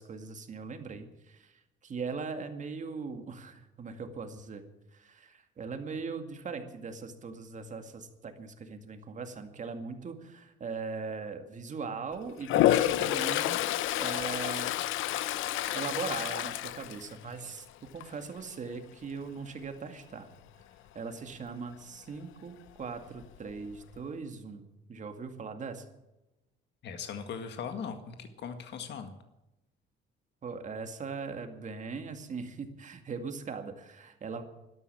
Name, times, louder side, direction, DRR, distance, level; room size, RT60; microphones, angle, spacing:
voice 1, 0.0-1.5 1.8-4.6 4.9-13.6 14.0-14.7 15.7-17.7 17.9-20.3 20.9-25.9 30.4-34.4, right 5 dB, 40° right, 7 dB, 2.2 m, -40 dB
Toilet flush, 12.4-17.6 18.0-18.4 22.8-22.9 23.2-24.0, left 14 dB, 90° left, 0.8 m, -29 dB
voice 2, 26.8-29.1, left 6 dB, 60° left, 7 dB, 1.9 m, -39 dB
12.5 x 12.5 x 8.7 m, 0.95 s
cardioid pair, 135°, 20 cm